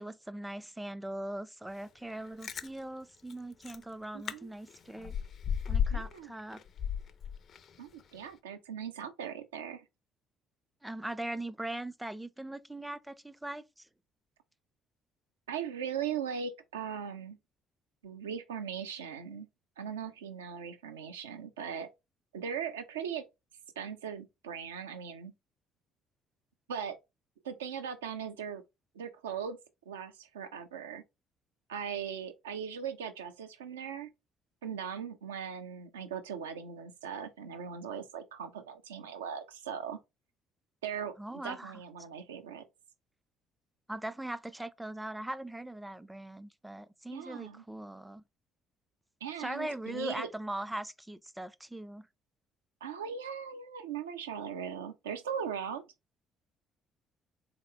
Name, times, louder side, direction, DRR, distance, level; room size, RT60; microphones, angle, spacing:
voice 1, 0.0-5.2 5.7-6.6 10.8-13.9 41.2-41.8 43.9-48.2 49.4-52.1, right 1 dB, 10° right, 0.4 m, -40 dB
Chewing mastication, 2.2-2.7 3.3-3.4 3.6-3.8 4.3-4.4 4.7-6.2 6.5-7.8 8.2-8.3, left 8 dB, 50° left, 0.4 m, -33 dB
voice 2, 4.1-4.5 5.9-6.3 7.8-9.8 15.5-17.4 18.0-19.5 19.8-21.9 22.3-23.3 23.8-25.3 26.7-27.0 27.4-28.6 28.9-29.6 29.9-31.0 31.7-34.1 34.6-40.0 40.8-41.1 41.4-42.6 47.1-47.6 49.2-50.3 52.8-55.9, right 7 dB, 85° right, 0.5 m, -39 dB
3.8 x 2.9 x 3.2 m
hypercardioid pair, 50°, 0 cm